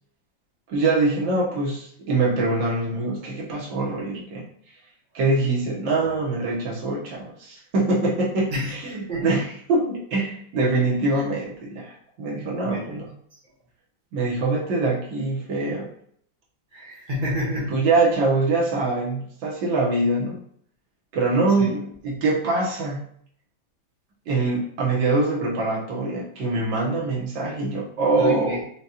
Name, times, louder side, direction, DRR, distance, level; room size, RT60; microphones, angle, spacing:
voice 1, 0.7-4.5 5.1-8.5 8.8-13.1 14.1-15.9 17.7-20.4 21.1-23.0 24.3-28.6, right 3 dB, 80° right, -3 dB, 1.7 m, -24 dB
voice 2, 6.0-6.3 8.5-8.7 9.1-9.4 11.1-11.2 12.6-13.0 13.3-13.4 16.7-17.9 21.6-21.7 28.2-28.6, left 1 dB, 35° right, -4 dB, 0.8 m, -30 dB
5.0 x 2.3 x 2.8 m, 0.65 s
omnidirectional pair, 2.1 m